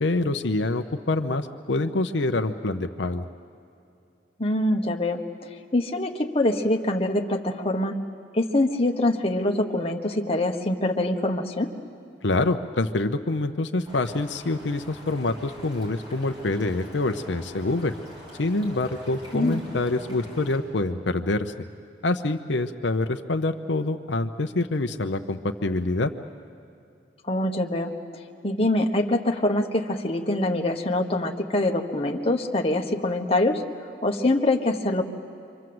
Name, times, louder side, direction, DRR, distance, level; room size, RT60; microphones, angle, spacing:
voice 1, 0.0-3.2 12.2-17.9 18.4-21.5 22.0-26.1, left 2 dB, 80° left, 7 dB, 0.8 m, -26 dB
voice 2, 4.4-5.2 5.7-7.9 8.3-11.7 19.3-19.6 27.3-27.9 28.4-33.6 34.0-35.0, left 1 dB, 30° left, 2 dB, 1.3 m, -24 dB
sound 1, 13.8-20.6, equal, 25° right, 5.6 m, -45 dB
28.0 x 25.0 x 7.8 m, 2.6 s
head